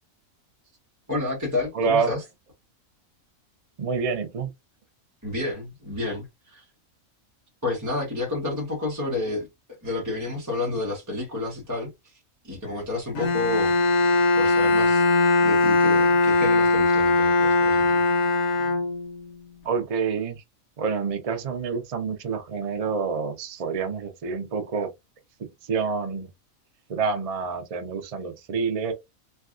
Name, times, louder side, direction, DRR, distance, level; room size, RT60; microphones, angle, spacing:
voice 1, 1.1-2.2 5.2-6.6 7.6-9.5 9.8-13.8 14.4-15.1 15.4-18.0, left 2 dB, 15° right, 0.9 m, -30 dB
voice 2, 1.7-2.1 3.8-4.5 19.6-20.4 20.8-24.9 25.6-26.3 26.9-28.9, right 5 dB, 60° right, 0.3 m, -27 dB
Bowed string instrument, 13.1-19.3, left 3 dB, 70° left, 1.2 m, -20 dB
3.3 x 2.4 x 2.4 m
omnidirectional pair, 1.5 m